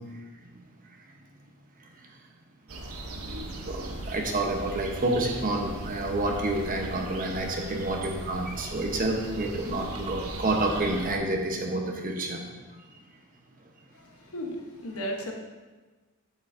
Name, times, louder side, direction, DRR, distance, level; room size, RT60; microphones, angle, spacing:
sound 1, 2.7-11.2, right 1 dB, 75° right, 0.9 m, -38 dB
voice 1, 3.7-12.4, right 2 dB, 40° right, 1 dB, 1.0 m, -29 dB
voice 2, 13.9-15.3, equal, 70° left, 2 dB, 1.1 m, -35 dB
8.1 x 7.6 x 2.7 m, 1.3 s
head